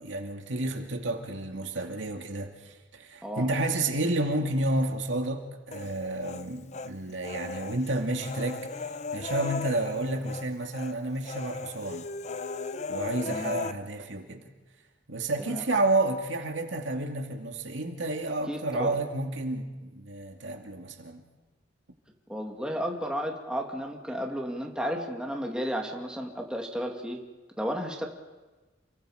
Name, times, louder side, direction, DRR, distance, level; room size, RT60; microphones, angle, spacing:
voice 1, 0.0-8.7 9.1-12.1 12.9-14.5 15.1-21.2, right 2 dB, 75° right, 4 dB, 2.4 m, -30 dB
Human voice, 5.7-6.9 7.2-10.5 10.7-10.9 11.2-13.7, left 3 dB, 35° left, 0.8 m, -37 dB
voice 2, 18.5-19.0 22.3-27.2 27.6-28.1, equal, 5° right, 1 dB, 2.3 m, -33 dB
29.0 x 23.5 x 5.0 m, 1.2 s
head